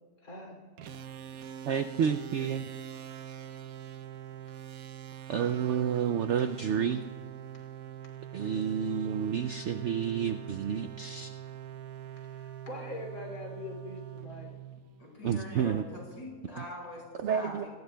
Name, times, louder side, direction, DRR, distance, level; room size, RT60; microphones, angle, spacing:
voice 1, 0.2-0.6 3.1-3.2 12.3-14.5, left 2 dB, 60° left, 1 dB, 3.4 m, -43 dB
sound 1, 0.8-15.3, right 10 dB, 65° right, 1.1 m, -44 dB
voice 2, 1.6-2.7 5.3-7.0 8.3-11.3 15.2-15.9 17.2-17.7, right 8 dB, 85° right, 9 dB, 0.6 m, -30 dB
voice 3, 15.0-17.7, left 1 dB, 90° left, -3 dB, 6.4 m, -43 dB
26.5 x 19.0 x 2.3 m, 1.5 s
omnidirectional pair, 1.8 m